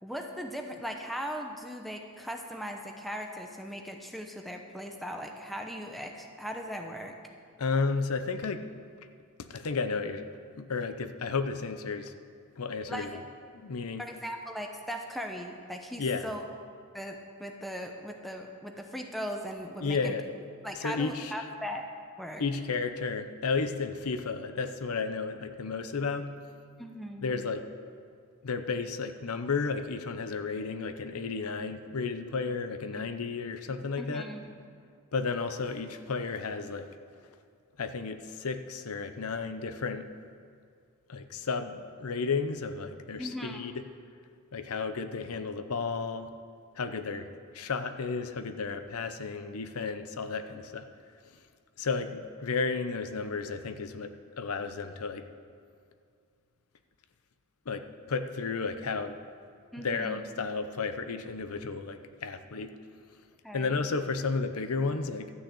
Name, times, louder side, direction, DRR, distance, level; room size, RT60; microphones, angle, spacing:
voice 1, 0.0-7.2 12.9-13.2 14.0-16.5 16.9-20.1 20.6-21.9 22.2-22.4 26.8-27.4 34.0-34.5 43.2-43.6 59.7-60.2 63.4-63.8, equal, ahead, 3 dB, 0.8 m, -39 dB
voice 2, 7.6-8.6 9.4-10.3 10.6-12.1 12.6-13.2 13.5-14.0 16.0-16.2 19.8-20.4 20.8-21.3 22.4-26.3 27.2-27.6 28.4-34.2 35.1-36.9 37.8-40.1 41.1-43.7 44.5-46.3 46.8-47.3 47.5-50.9 51.8-55.3 57.7-59.2 59.8-62.7 63.5-65.3, left 4 dB, 80° left, 9 dB, 0.7 m, -33 dB
12.5 x 6.4 x 8.3 m, 2.2 s
head